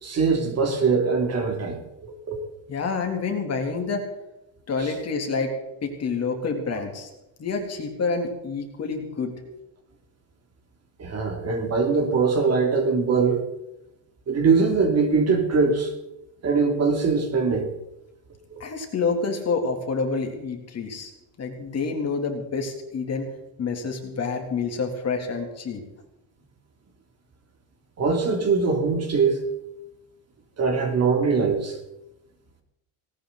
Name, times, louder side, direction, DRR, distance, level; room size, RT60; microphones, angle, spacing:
voice 1, 0.0-2.4 11.0-13.4 14.3-15.9 16.4-17.7 18.5-18.6 28.0-29.4 30.6-31.8, right 4 dB, 35° right, 3.1 m, -22 dB
voice 2, 2.7-4.0 4.7-5.5 5.8-7.1 7.4-9.4 18.6-21.1 21.4-23.3 23.6-25.8, left 4 dB, 35° left, 3.4 m, -28 dB
18.5 x 18.0 x 4.2 m
cardioid pair, 150°, 44 cm